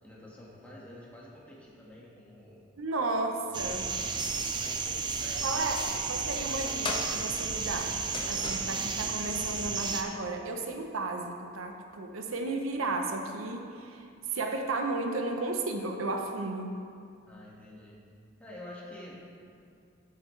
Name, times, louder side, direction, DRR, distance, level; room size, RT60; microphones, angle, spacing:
voice 1, 0.0-2.7 3.5-4.1 4.6-6.6 17.2-18.0 18.4-19.2, left 1 dB, 5° left, -6 dB, 1.6 m, -49 dB
voice 2, 2.8-3.9 5.4-8.0 8.3-16.8, right 2 dB, 90° right, 4 dB, 0.8 m, -33 dB
sound 1, 3.5-10.0, right 5 dB, 20° right, 0.4 m, -33 dB
sound 2, 4.2-9.9, left 3 dB, 25° left, 0.6 m, -42 dB
11.5 x 8.0 x 3.2 m, 2.3 s
head